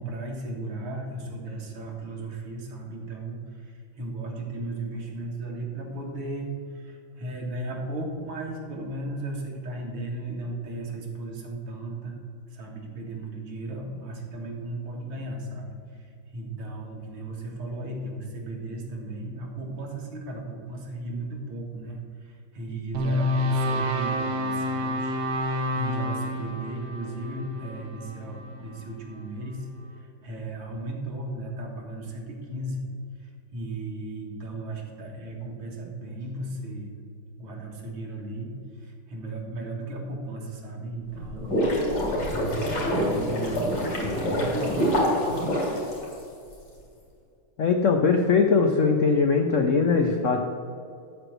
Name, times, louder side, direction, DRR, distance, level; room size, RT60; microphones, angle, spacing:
voice 1, 0.0-12.2 12.5-32.9 33.2-36.9 37.4-38.5 38.8-41.6 42.3-43.7 44.1-45.0, right 2 dB, 85° right, 0 dB, 2.7 m, -36 dB
sound 1, 22.9-29.2, left 1 dB, 55° right, 1.5 m, -29 dB
sound 2, 41.1-46.5, equal, 55° left, 3.4 m, -26 dB
voice 2, 47.6-50.4, left 5 dB, 80° left, 4 dB, 0.6 m, -21 dB
13.0 x 4.5 x 7.8 m, 2.4 s
omnidirectional pair, 2.4 m